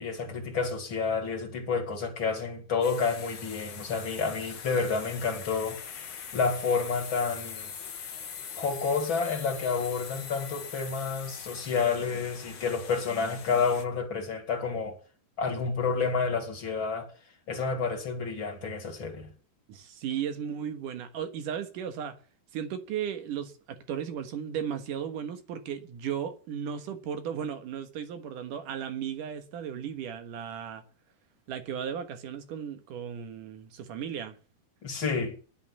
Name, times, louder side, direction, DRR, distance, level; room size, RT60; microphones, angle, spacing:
voice 1, 0.0-5.8 6.3-7.7 8.5-15.0 15.4-17.1 17.5-19.3 34.8-35.4, left 5 dB, 35° left, 2.9 m, -29 dB
sound 1, 2.8-13.9, left 7 dB, 50° left, 2.2 m, -42 dB
voice 2, 19.7-22.2 22.5-30.8 31.5-34.4, right 8 dB, 65° right, 2.7 m, -35 dB
11.0 x 10.0 x 7.3 m
omnidirectional pair, 4.5 m